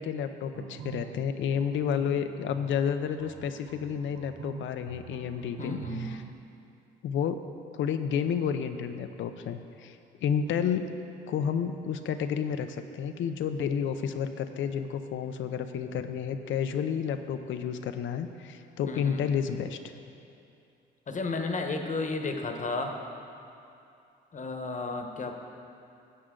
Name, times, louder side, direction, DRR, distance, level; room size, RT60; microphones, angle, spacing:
voice 1, 0.0-6.2 7.0-7.4 7.7-10.8 11.3-19.8, left 7 dB, 75° left, 8 dB, 0.6 m, -31 dB
sound 1, 0.5-6.3, right 8 dB, 70° right, 0.6 m, -43 dB
voice 2, 5.6-6.0 18.9-19.2 21.1-22.9 24.3-25.3, left 3 dB, 40° left, 4 dB, 1.1 m, -33 dB
15.0 x 7.7 x 3.8 m, 2.7 s
cardioid pair, 90°, 20 cm